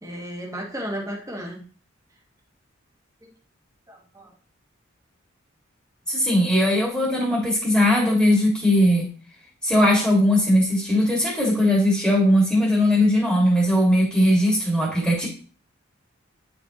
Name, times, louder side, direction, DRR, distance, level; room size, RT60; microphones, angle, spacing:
voice 1, 0.0-1.6 3.2-3.3 3.9-4.3, equal, 15° right, -1 dB, 1.6 m, -34 dB
voice 2, 6.1-9.1 9.6-15.3, left 1 dB, ahead, -4 dB, 2.0 m, -19 dB
9.3 x 5.1 x 3.0 m, 0.40 s
head